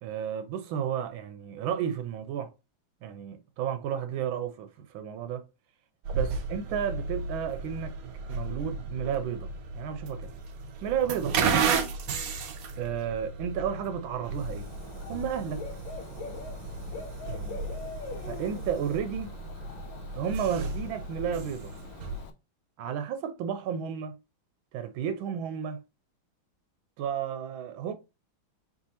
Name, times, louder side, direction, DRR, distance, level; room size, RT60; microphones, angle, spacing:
voice 1, 0.0-2.5 3.0-5.4 6.1-7.9 8.3-9.5 9.7-10.3 10.8-11.7 12.8-14.7 15.1-15.6 17.3-17.6 18.3-19.3 20.1-21.7 22.8-24.1 24.7-25.8 27.0-27.9, right 8 dB, 85° right, 1.4 m, -32 dB
sound 1, 6.0-22.2, right 4 dB, 65° right, 0.9 m, -34 dB
Dog / Bird, 14.3-22.3, left 5 dB, 80° left, 1.4 m, -44 dB
4.5 x 3.7 x 2.7 m
omnidirectional pair, 2.2 m